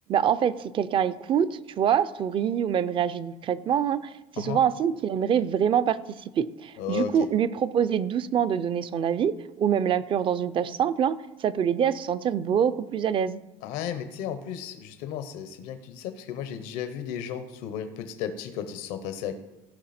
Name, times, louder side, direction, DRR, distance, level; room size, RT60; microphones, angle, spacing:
voice 1, 0.1-13.4, right 8 dB, 40° right, 15 dB, 0.5 m, -25 dB
voice 2, 6.8-7.1 13.6-19.3, left 9 dB, 85° left, 9 dB, 1.0 m, -34 dB
16.5 x 5.7 x 4.3 m, 1.0 s
cardioid pair, 130°, 14 cm